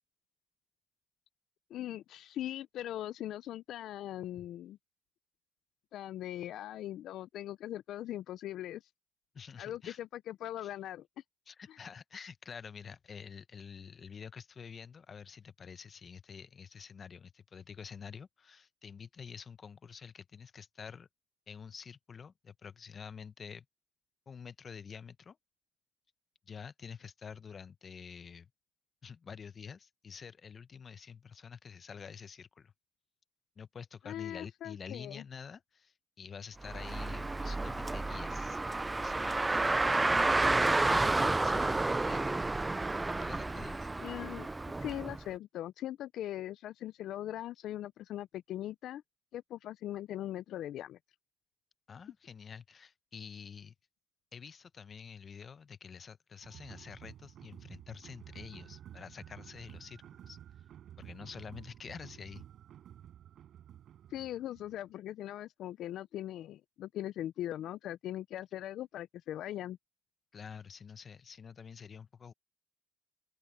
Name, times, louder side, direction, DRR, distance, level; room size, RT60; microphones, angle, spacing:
voice 1, 1.7-4.8 5.9-8.9 9.6-11.1 11.7-11.8 34.0-35.2 44.0-44.5 44.8-49.0 49.3-51.0 64.1-69.8, left 12 dB, 80° left, 0.4 m, -40 dB
voice 2, 9.3-10.0 10.6-10.7 11.5-21.1 21.5-23.6 24.3-25.4 26.5-28.5 29.0-32.7 33.6-38.6 39.0-39.6 40.3-42.3 43.2-43.9 51.9-53.7 54.3-60.4 61.0-62.4 70.3-72.3, left 6 dB, 45° left, 0.9 m, -48 dB
Car, 36.6-45.2, right 2 dB, 20° right, 0.3 m, -30 dB
sound 1, 56.4-64.9, right 10 dB, 70° right, 4.7 m, -52 dB
open air
cardioid pair, 90°, 0 cm